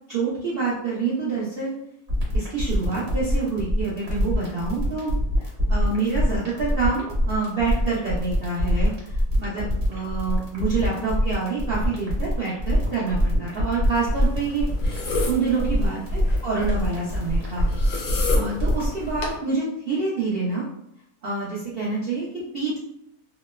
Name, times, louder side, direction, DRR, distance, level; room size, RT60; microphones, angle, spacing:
voice 1, 0.1-1.7 2.3-5.1 5.4-14.7 15.3-17.7 18.3-20.6 21.2-22.8, right 4 dB, 85° right, -6 dB, 0.5 m, -27 dB
sound 1, 2.1-18.9, equal, 55° right, 1.2 m, -24 dB
sound 2, 14.1-19.4, left 2 dB, 85° left, 1.2 m, -32 dB
2.8 x 2.0 x 2.2 m, 0.79 s
omnidirectional pair, 1.7 m